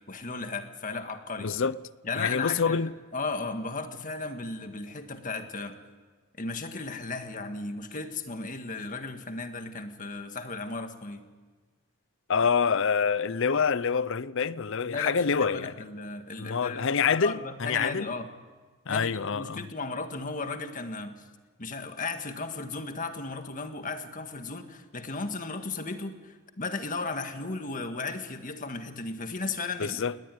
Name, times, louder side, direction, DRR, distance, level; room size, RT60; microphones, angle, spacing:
voice 1, 0.1-1.5 2.0-2.8 3.1-5.8 6.4-11.3 12.4-12.5 14.8-18.3 18.9-21.2 21.6-30.0, left 3 dB, 40° left, 1.7 m, -35 dB
voice 2, 1.4-1.8 2.2-2.9 12.3-15.7 16.4-18.1 18.9-19.7 29.8-30.1, left 6 dB, 60° left, 0.6 m, -26 dB
19.0 x 19.0 x 9.3 m
head